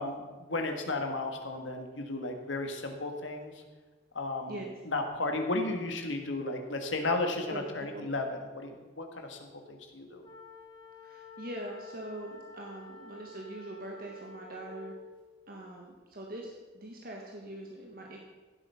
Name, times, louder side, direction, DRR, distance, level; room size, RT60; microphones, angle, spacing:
voice 1, 0.0-3.6 4.1-4.6 4.9-10.3, left 2 dB, 80° left, 4 dB, 1.8 m, -34 dB
voice 2, 7.5-8.1 11.0-14.9 15.5-18.2, right 1 dB, 50° right, 0 dB, 1.4 m, -42 dB
sound 1, 10.2-15.1, left 3 dB, 25° left, 2.0 m, -50 dB
16.0 x 8.1 x 5.7 m, 1.3 s
head